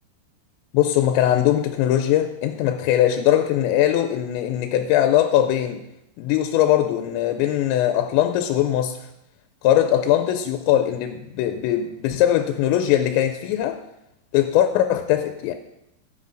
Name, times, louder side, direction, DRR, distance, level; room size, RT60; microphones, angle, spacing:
voice 1, 0.7-5.8 6.2-9.0 9.6-13.8 14.3-15.5, left 11 dB, 90° left, 2.9 m, -20 dB
15.0 x 8.1 x 2.5 m
omnidirectional pair, 5.1 m